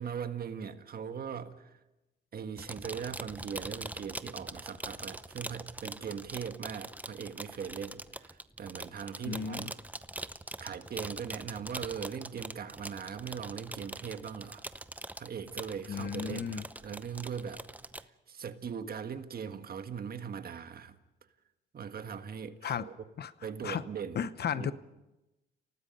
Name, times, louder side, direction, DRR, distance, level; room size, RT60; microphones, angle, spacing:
voice 1, 0.0-1.8 2.3-9.7 10.6-14.6 15.2-17.6 18.0-21.0 21.7-22.9 23.4-24.2 24.5-24.7, right 7 dB, 50° right, 9 dB, 1.6 m, -40 dB
sound 1, 2.6-18.1, right 1 dB, 10° right, 0.8 m, -43 dB
voice 2, 9.3-9.7 15.9-16.6 22.6-22.8 23.2-23.3 23.6-23.8 24.1-24.7, left 7 dB, 55° left, 14 dB, 0.9 m, -34 dB
29.0 x 18.0 x 5.4 m, 0.98 s
cardioid pair, 90°, 20 cm